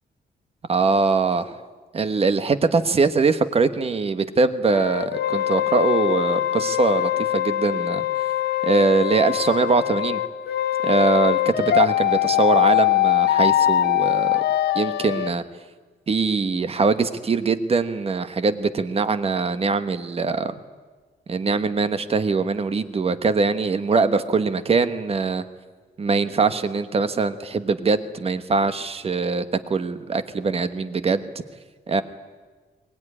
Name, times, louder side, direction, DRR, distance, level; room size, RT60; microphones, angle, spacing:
voice 1, 0.7-1.6 1.9-8.0 8.6-10.2 10.8-14.4 14.7-15.4 16.1-20.5 21.3-25.4 26.0-29.4 29.7-31.3 31.9-32.0, right 4 dB, 35° right, 11 dB, 1.2 m, -22 dB
sound 1, 4.7-15.3, left 13 dB, 75° left, 0.9 m, -22 dB
22.5 x 19.0 x 9.9 m, 1.4 s
wide cardioid pair, 150°, 17 cm